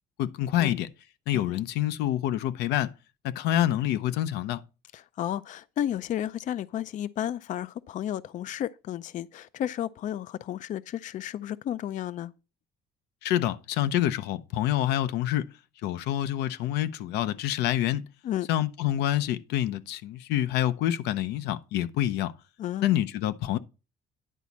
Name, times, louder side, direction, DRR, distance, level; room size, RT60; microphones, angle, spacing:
voice 1, 0.2-0.9 1.3-2.9 3.2-4.6 13.2-15.5 15.8-18.0 18.5-22.3 22.8-23.6, left 12 dB, 90° left, 0.7 m, -27 dB
voice 2, 1.3-1.6 4.9-12.3 18.2-18.5 22.6-22.9, left 11 dB, 50° left, 0.4 m, -32 dB
10.0 x 4.1 x 6.0 m
cardioid pair, 110°, 17 cm